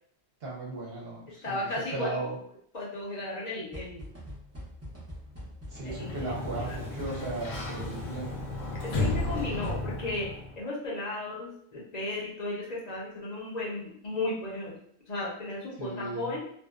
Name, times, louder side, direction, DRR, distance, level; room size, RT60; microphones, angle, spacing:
voice 1, 0.4-1.7 1.9-2.4 5.7-8.3 8.9-9.4 15.8-16.3, right 2 dB, 55° right, -4 dB, 0.9 m, -36 dB
voice 2, 1.3-2.2 2.7-4.1 5.8-6.3 6.6-6.8 8.8-10.3 10.5-14.8 15.1-16.4, left 2 dB, 40° left, -5 dB, 0.6 m, -35 dB
sound 1, 3.7-8.3, equal, 20° right, 0.4 m, -44 dB
Sliding door, 5.7-10.6, left 2 dB, 90° left, 1.0 m, -34 dB
2.5 x 2.1 x 2.3 m, 0.65 s
omnidirectional pair, 1.3 m